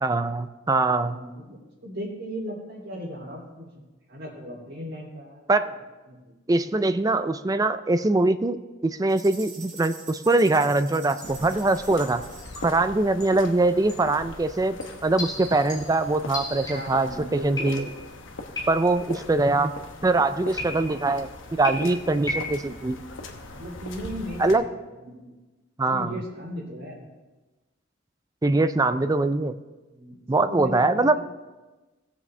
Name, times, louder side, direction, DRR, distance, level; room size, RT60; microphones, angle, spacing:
voice 1, 0.0-1.2 5.5-5.7 6.5-12.2 12.6-14.8 15.0-17.9 18.7-19.7 20.0-21.3 21.6-23.0 24.4-24.6 25.8-26.1 28.4-29.6 30.3-31.3, right 2 dB, 20° right, 11 dB, 0.3 m, -23 dB
voice 2, 1.0-1.6 1.8-5.6 6.1-6.4 16.6-18.1 23.5-24.7 25.0-25.3 25.8-27.0 29.9-31.3, equal, 85° right, -7 dB, 2.8 m, -37 dB
sound 1, 9.1-12.8, right 3 dB, 40° right, 3.6 m, -45 dB
sound 2, 10.5-10.8 11.2-11.5 12.0-12.9 13.2-13.5 13.9-14.1 14.8-17.1 17.6-18.1 18.6-19.1 20.6-21.1 21.6-22.7, left 1 dB, 20° left, 3.7 m, -36 dB
sound 3, 11.2-24.6, left 2 dB, 85° left, 1.0 m, -41 dB
18.0 x 7.2 x 3.3 m, 1.2 s
head